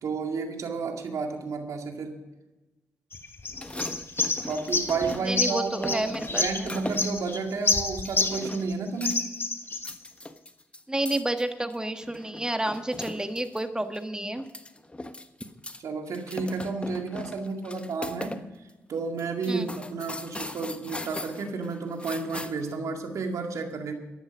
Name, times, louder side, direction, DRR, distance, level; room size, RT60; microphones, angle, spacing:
voice 1, 0.0-2.2 4.5-9.3 15.8-18.5 18.9-23.9, right 4 dB, 70° right, 4 dB, 2.2 m, -31 dB
sound 1, 3.1-8.7 9.0-9.9, left 3 dB, 40° left, 1.9 m, -29 dB
sound 2, 3.5-5.5 5.8-7.2 8.1-8.7 9.0-9.4 9.7-13.6 13.9-14.0 14.4-15.8 16.1-18.4 18.7-18.8 19.2-22.7, left 1 dB, 20° left, 1.3 m, -39 dB
voice 2, 5.3-6.6 10.9-14.5 19.5-19.7, right 1 dB, 15° right, 8 dB, 1.6 m, -30 dB
14.5 x 11.0 x 5.2 m, 1.1 s
hypercardioid pair, 40°, 6 cm